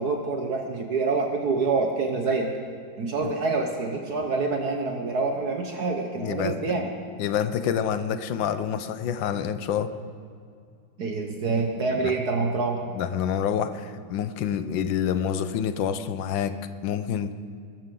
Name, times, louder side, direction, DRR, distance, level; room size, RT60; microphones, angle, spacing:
voice 1, 0.0-2.5 3.0-6.9 11.0-12.8, right 4 dB, 55° right, 3 dB, 1.4 m, -26 dB
voice 2, 6.2-6.7 7.2-9.9 12.0-12.2 12.9-17.3, left 8 dB, 75° left, 11 dB, 1.4 m, -27 dB
21.5 x 14.0 x 3.8 m, 2.3 s
omnidirectional pair, 2.1 m